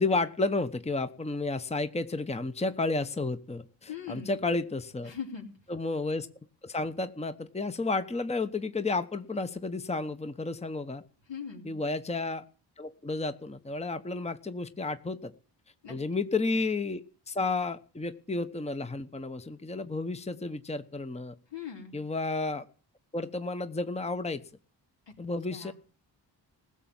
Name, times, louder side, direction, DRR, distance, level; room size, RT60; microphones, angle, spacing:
voice 1, 0.0-5.1 5.7-6.3 6.6-11.0 11.6-12.4 12.8-15.3 15.9-21.4 21.9-22.7 23.1-24.4 25.2-25.7, left 3 dB, 15° left, 11 dB, 1.1 m, -32 dB
voice 2, 3.9-4.4 5.0-5.5 11.3-11.7 15.8-16.0 21.5-22.0 25.1-25.2 25.5-25.7, left 7 dB, 70° left, 1 dB, 4.7 m, -40 dB
16.0 x 7.1 x 9.0 m, 0.41 s
supercardioid pair, 50°, 45 cm